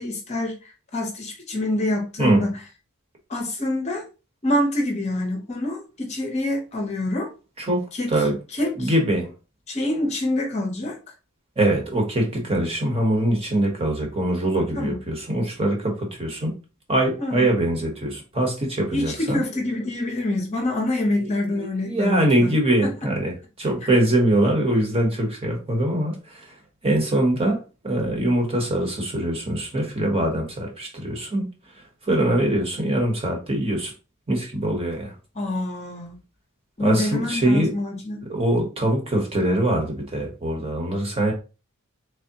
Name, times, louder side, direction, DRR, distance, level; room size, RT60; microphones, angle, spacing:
voice 1, 0.0-2.5 3.3-4.1 4.4-7.3 7.9-8.1 8.5-8.9 9.7-11.0 14.7-15.0 17.2-17.5 18.9-22.5 22.8-22.9 35.3-36.2 36.8-38.2, left 1 dB, 30° left, 2 dB, 0.7 m, -26 dB
voice 2, 7.6-8.3 8.8-9.3 11.6-16.5 16.9-19.4 21.2-21.3 21.5-26.5 26.8-31.5 32.0-33.9 34.3-35.1 36.8-37.7 38.3-41.3, right 1 dB, 25° right, 1 dB, 0.9 m, -23 dB
3.5 x 3.3 x 2.8 m, 0.32 s
head